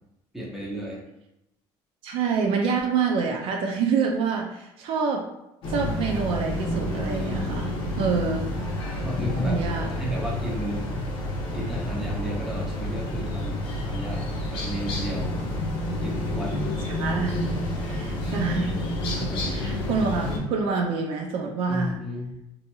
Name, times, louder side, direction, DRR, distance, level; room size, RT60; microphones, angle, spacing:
voice 1, 0.3-1.0 7.9-8.1 9.0-9.6 9.9-10.9 11.5-15.4 16.0-16.7 17.7-18.3 19.1-19.4 21.7-22.3, equal, 5° right, -5 dB, 0.6 m, -33 dB
voice 2, 2.0-5.3 5.7-8.5 9.4-9.9 16.8-17.3 17.9-18.7 19.4-22.0, right 5 dB, 55° right, 1 dB, 0.3 m, -27 dB
sound 1, 5.6-20.4, left 1 dB, 50° left, 0.6 m, -29 dB
2.8 x 2.6 x 2.2 m, 0.88 s
cardioid pair, 175°, 11 cm